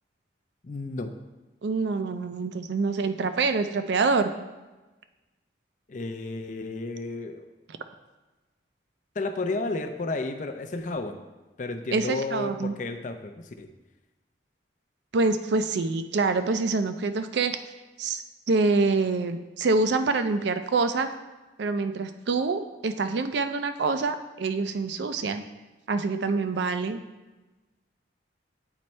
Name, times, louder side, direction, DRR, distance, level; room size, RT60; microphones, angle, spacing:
voice 1, 0.6-1.1 5.9-7.5 9.1-11.2 11.6-13.7, left 3 dB, 40° left, 6 dB, 0.4 m, -32 dB
voice 2, 1.6-4.3 11.9-12.7 15.1-17.6 18.0-21.1 21.6-25.4 25.9-27.0, right 3 dB, 65° right, 9 dB, 0.4 m, -26 dB
9.0 x 3.1 x 4.3 m, 1.2 s
head